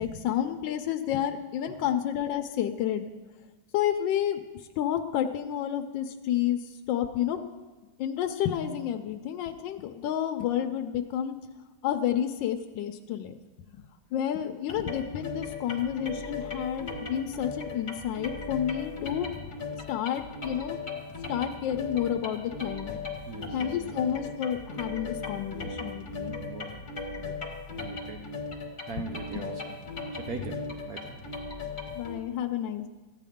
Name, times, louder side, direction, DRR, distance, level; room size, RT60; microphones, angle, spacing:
voice 1, 0.0-3.1 3.7-4.4 4.8-7.5 8.0-11.4 11.8-13.8 14.1-19.6 19.9-20.8 21.3-23.0 23.5-26.3 29.0-29.1 31.9-32.9, left 10 dB, 80° left, 5 dB, 1.2 m, -30 dB
sound 1, 14.7-32.1, left 3 dB, 30° left, 1.0 m, -38 dB
voice 2, 23.2-24.1 26.3-26.9 27.1-28.4 28.9-29.8 30.1-31.2, right 4 dB, 65° right, 3 dB, 1.0 m, -41 dB
14.5 x 9.1 x 3.6 m, 1.2 s
omnidirectional pair, 2.1 m